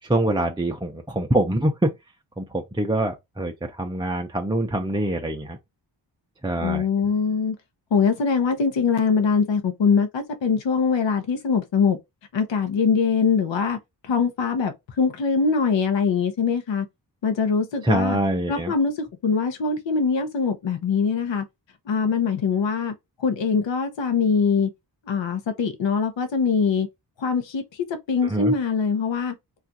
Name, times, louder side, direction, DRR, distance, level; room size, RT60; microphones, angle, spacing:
voice 1, 0.1-1.9 2.4-3.5 3.8-5.6 6.4-6.9 17.8-18.7 28.3-28.5, right 1 dB, 10° right, 0.4 m, -24 dB
voice 2, 6.6-7.5 7.9-12.0 12.3-13.8 14.0-16.9 17.2-18.2 18.5-21.4 21.9-22.9 23.2-24.7 25.1-26.9 27.2-27.6 28.1-29.3, left 5 dB, 85° left, 0.8 m, -22 dB
2.4 x 2.4 x 3.9 m
wide cardioid pair, 135°, 43 cm